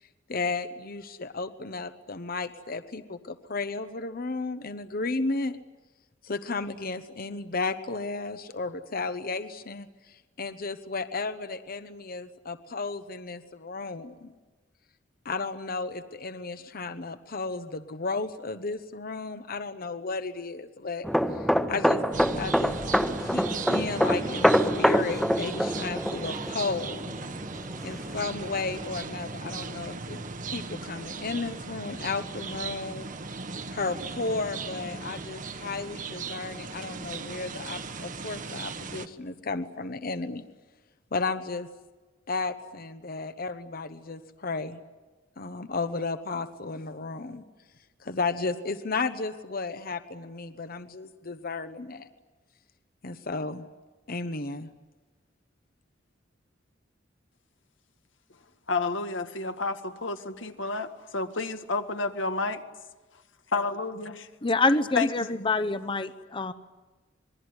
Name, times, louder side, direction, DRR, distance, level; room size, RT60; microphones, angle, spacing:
voice 1, 0.3-5.6 6.3-9.9 10.4-14.3 15.2-21.0 21.7-22.0 22.4-22.7 23.2-27.1 27.8-30.2 30.5-33.1 33.7-40.4 41.1-41.7 42.3-44.8 45.4-47.4 48.0-52.1 53.0-53.6 54.1-54.7, left 3 dB, 50° left, 10 dB, 1.0 m, -33 dB
sound 1, 21.0-28.5 28.8-29.1, equal, ahead, 1.2 m, -26 dB
sound 2, 22.1-39.1, right 4 dB, 45° right, 1.2 m, -38 dB
voice 2, 58.7-62.6 63.5-64.1 65.0-65.1, left 3 dB, 90° left, 8 dB, 1.9 m, -30 dB
voice 3, 64.4-66.5, left 3 dB, 25° left, 12 dB, 0.8 m, -26 dB
27.0 x 21.5 x 9.7 m, 1.2 s
head